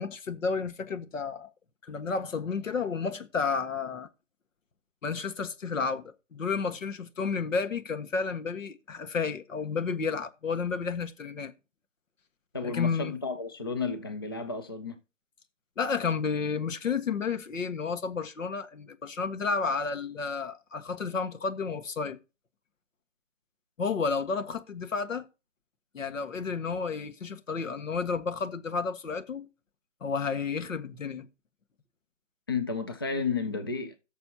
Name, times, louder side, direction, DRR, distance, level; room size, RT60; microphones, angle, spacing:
voice 1, 0.0-1.5 1.8-4.1 5.0-11.5 12.6-13.1 15.8-22.2 23.8-25.2 25.9-29.5 30.0-31.3, left 5 dB, 85° left, 1.6 m, -31 dB
voice 2, 12.5-15.0 32.5-34.0, left 4 dB, 20° left, 0.4 m, -32 dB
16.5 x 6.7 x 2.8 m
hypercardioid pair, 160°, 38 cm